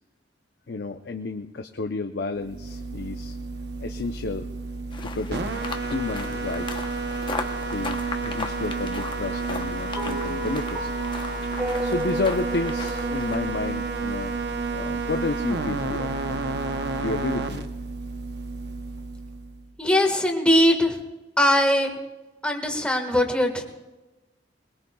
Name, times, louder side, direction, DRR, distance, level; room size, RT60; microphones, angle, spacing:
voice 1, 0.7-3.4 3.8-4.5 5.0-6.8 7.7-10.9 11.8-14.4 14.7-16.1 17.0-17.7, left 3 dB, 65° left, 5 dB, 0.6 m, -31 dB
sound 1, 2.4-19.6, right 3 dB, 70° right, 0.9 m, -30 dB
sound 2, 4.9-13.4, left 4 dB, 30° left, 0.9 m, -37 dB
sound 3, 10.0-14.4, equal, 20° right, 1.9 m, -34 dB
voice 2, 19.8-21.0 21.4-22.0 22.4-23.6, left 1 dB, 5° left, 3 dB, 1.6 m, -21 dB
21.5 x 20.5 x 2.3 m, 1.1 s
head